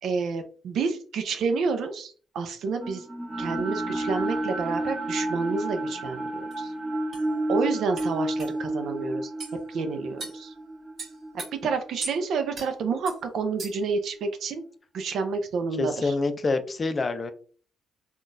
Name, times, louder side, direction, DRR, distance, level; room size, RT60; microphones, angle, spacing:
voice 1, 0.0-3.0 3.4-6.2 6.6-6.7 7.5-9.3 9.7-10.5 11.3-14.6 14.9-16.1, right 4 dB, 70° right, 7 dB, 0.6 m, -29 dB
sound 1, 2.8-13.0, right 1 dB, 20° right, 0.8 m, -31 dB
sound 2, 6.5-6.6 7.1-7.3 8.0-8.1 8.4-8.5 9.4-9.6 10.2-10.4 11.0-11.5 12.0-12.2 12.5-12.7 13.1-13.2 13.6-13.9, right 3 dB, 55° right, 1.6 m, -37 dB
voice 2, 15.8-17.3, left 3 dB, 35° left, 9 dB, 0.5 m, -26 dB
3.6 x 2.4 x 2.6 m, 0.42 s
cardioid pair, 90°, 0 cm